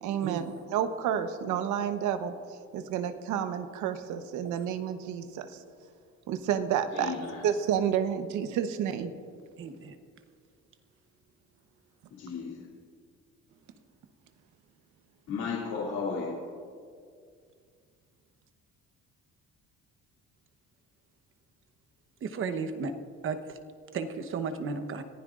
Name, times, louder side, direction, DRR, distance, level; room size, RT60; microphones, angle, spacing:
voice 1, 0.0-2.3 2.7-5.5 6.3-9.1, right 9 dB, 90° right, 9 dB, 1.0 m, -30 dB
voice 2, 6.9-7.4 12.1-12.6 15.3-16.4, left 5 dB, 70° left, -6 dB, 2.6 m, -34 dB
voice 3, 9.6-10.0 22.2-23.0 23.2-23.6 23.9-25.0, right 5 dB, 45° right, 8 dB, 1.0 m, -34 dB
25.5 x 15.0 x 2.5 m, 2.2 s
cardioid pair, 145°, 29 cm